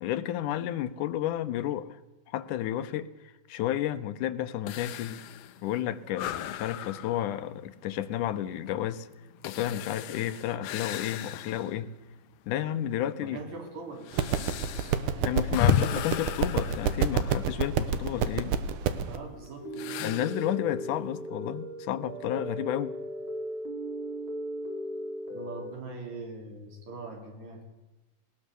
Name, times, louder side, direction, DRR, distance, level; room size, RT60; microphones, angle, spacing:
voice 1, 0.0-1.9 2.3-5.2 5.6-9.1 9.4-11.9 12.5-13.4 15.2-18.6 20.0-22.9, left 11 dB, 85° left, 12 dB, 2.4 m, -31 dB
sound 1, 4.7-11.8 12.3-12.4 13.1-17.7 19.7-20.6, left 10 dB, 70° left, 1.8 m, -34 dB
voice 2, 13.2-14.9 15.7-15.9 19.1-20.0 25.3-27.6, right 3 dB, 65° right, 3 dB, 4.6 m, -42 dB
sound 2, 14.1-19.2, right 7 dB, 80° right, 2.7 m, -28 dB
sound 3, 19.6-25.7, equal, 40° right, 4.4 m, -37 dB
20.0 x 20.0 x 6.8 m, 1.1 s
omnidirectional pair, 3.6 m